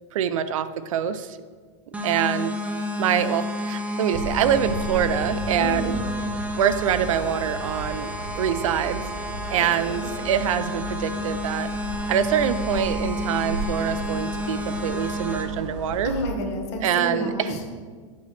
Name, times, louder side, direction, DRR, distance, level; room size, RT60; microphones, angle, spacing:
voice 1, 0.1-1.3 2.0-2.6 3.0-5.9 6.6-9.0 9.5-11.7 12.1-16.1 16.8-17.5, right 9 dB, 80° right, 13 dB, 0.5 m, -25 dB
sound 1, 1.9-15.4, left 1 dB, 10° right, 0.7 m, -30 dB
sound 2, 4.1-16.3, right 2 dB, 65° right, 0.9 m, -35 dB
voice 2, 5.5-6.1 9.6-10.1 16.0-17.8, left 1 dB, 55° left, 3 dB, 1.3 m, -31 dB
8.3 x 3.2 x 6.3 m, 1.5 s
hypercardioid pair, 125°, 17 cm